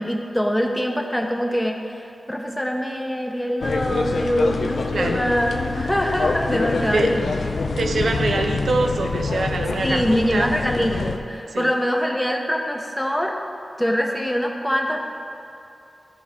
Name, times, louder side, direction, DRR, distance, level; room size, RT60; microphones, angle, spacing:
voice 1, 0.0-7.4 9.8-13.4 13.8-15.0, equal, 5° left, 2 dB, 0.8 m, -24 dB
sound 1, 3.6-11.2, left 3 dB, 85° left, 0.5 m, -25 dB
voice 2, 4.9-5.2 6.8-7.2 7.8-10.5 10.8-11.1 11.5-11.7, right 3 dB, 85° right, 5 dB, 0.6 m, -25 dB
13.0 x 4.9 x 3.6 m, 2.6 s
wide cardioid pair, 100°, 0 cm